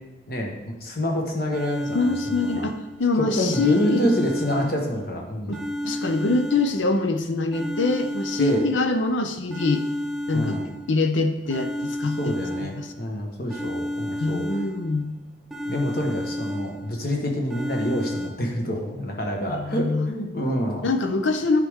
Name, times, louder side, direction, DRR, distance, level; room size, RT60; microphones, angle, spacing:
voice 1, 0.3-2.7 3.2-5.6 8.4-8.6 10.3-10.7 12.2-14.4 15.7-20.9, equal, 50° left, 0 dB, 1.3 m, -27 dB
sound 1, 1.5-3.1 3.5-5.1 5.5-7.1 7.5-9.1 9.5-11.1 11.5-13.1 13.5-15.1 15.5-17.1 17.5-18.3, equal, ahead, 0.7 m, -31 dB
voice 2, 1.9-4.0 4.6-4.7 5.5-9.8 10.3-10.6 10.9-12.2 12.6-12.9 14.2-15.1 19.5-20.1 20.8-21.6, left 3 dB, 85° left, 8 dB, 0.7 m, -24 dB
10.5 x 5.0 x 3.6 m, 1.0 s
head